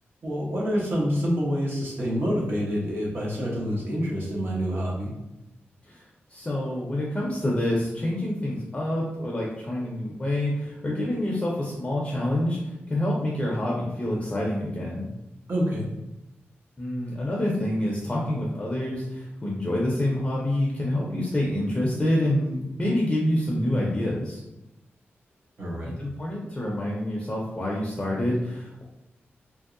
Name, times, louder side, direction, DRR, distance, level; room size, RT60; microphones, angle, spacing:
voice 1, 0.2-5.1 15.5-15.9 25.6-25.9, equal, 55° right, -4 dB, 0.9 m, -27 dB
voice 2, 6.3-15.1 16.8-24.4 26.0-28.8, left 1 dB, 20° left, -3 dB, 0.5 m, -27 dB
2.9 x 2.7 x 2.5 m, 0.94 s
wide cardioid pair, 135°, 4 cm